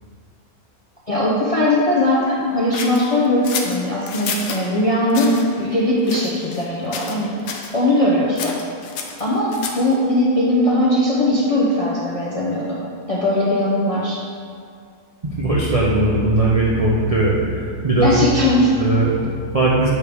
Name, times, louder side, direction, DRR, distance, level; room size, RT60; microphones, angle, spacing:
voice 1, 1.1-7.3 7.7-8.5 9.2-12.6 13.1-14.2 18.0-18.7, left 1 dB, 45° left, -6 dB, 0.4 m, -19 dB
sound 1, 2.7-4.6 5.1-5.4 6.0-6.7 6.9-7.2 7.5-7.7 8.4-9.9, left 6 dB, 85° left, 1.2 m, -29 dB
voice 2, 15.4-18.2 18.8-19.9, right 2 dB, 50° right, -5 dB, 0.4 m, -18 dB
7.4 x 4.7 x 3.4 m, 2.2 s
omnidirectional pair, 1.7 m